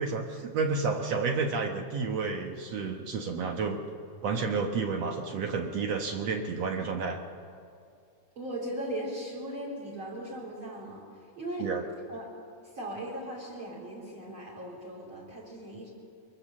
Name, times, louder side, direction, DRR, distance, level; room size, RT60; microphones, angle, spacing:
voice 1, 0.0-3.8 4.2-7.2 11.6-11.8, right 4 dB, 60° right, 4 dB, 2.1 m, -30 dB
voice 2, 8.3-11.0 11.4-11.7 12.1-12.3 12.7-15.9, right 1 dB, 40° right, -2 dB, 4.7 m, -38 dB
23.0 x 22.0 x 7.4 m, 2.4 s
omnidirectional pair, 3.8 m